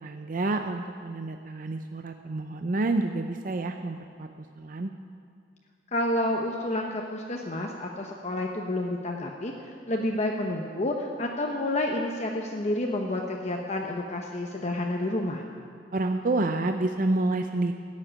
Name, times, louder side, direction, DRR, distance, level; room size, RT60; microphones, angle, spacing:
voice 1, 0.0-4.3 4.6-4.9 15.9-17.7, right 2 dB, 50° right, 6 dB, 0.6 m, -28 dB
voice 2, 5.9-15.4, left 1 dB, 40° left, 1 dB, 0.9 m, -29 dB
14.5 x 7.4 x 9.9 m, 2.2 s
head